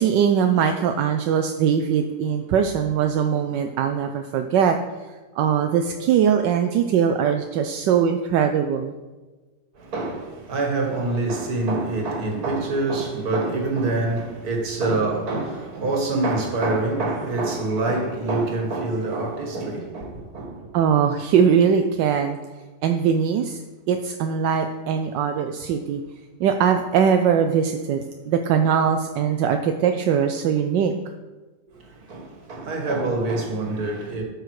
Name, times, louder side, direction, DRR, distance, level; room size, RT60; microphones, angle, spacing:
voice 1, 0.0-4.8 5.4-8.9 20.7-22.4 22.8-23.6 23.9-26.0 26.4-30.9, right 7 dB, 80° right, 1.3 m, -21 dB
voice 2, 9.8-20.7 31.7-34.2, right 2 dB, 60° right, 2.1 m, -25 dB
12.5 x 6.6 x 4.7 m
omnidirectional pair, 1.9 m